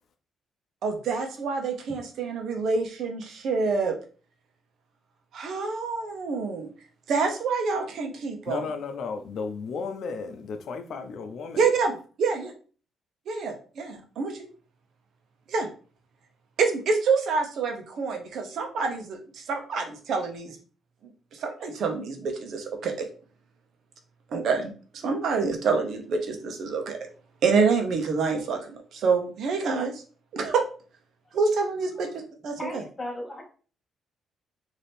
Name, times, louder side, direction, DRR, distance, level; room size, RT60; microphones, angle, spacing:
voice 1, 0.8-3.9 5.3-6.7 7.1-8.6 11.6-11.9 12.2-12.5 13.3-14.5 15.5-15.7 16.6-20.6 21.3-23.1 24.3-27.0 27.4-30.0 30.3-30.6 31.3-32.1 32.4-32.6, right 4 dB, 70° right, 4 dB, 1.0 m, -27 dB
voice 2, 8.4-11.6, left 5 dB, 65° left, 8 dB, 0.6 m, -34 dB
voice 3, 31.9-32.2 32.6-33.4, left 1 dB, 15° left, -1 dB, 1.5 m, -37 dB
4.2 x 2.9 x 3.4 m, 0.39 s
cardioid pair, 90°, 0 cm